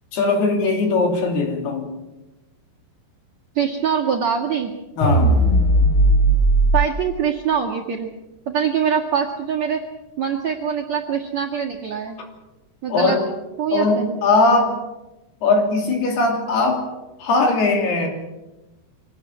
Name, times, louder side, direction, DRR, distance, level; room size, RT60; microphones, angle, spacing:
voice 1, 0.1-1.9 5.0-5.3 12.9-13.2 13.7-14.7 15.4-16.8 17.2-18.1, left 3 dB, 60° left, 3 dB, 4.7 m, -19 dB
voice 2, 3.6-4.7 6.7-8.1 8.5-9.8 10.2-12.2 12.8-13.2 13.6-14.2, right 7 dB, 50° right, -3 dB, 2.3 m, -23 dB
sound 1, 5.0-6.8, right 1 dB, 10° left, 2.7 m, -16 dB
24.5 x 18.0 x 7.5 m, 1.0 s
omnidirectional pair, 5.5 m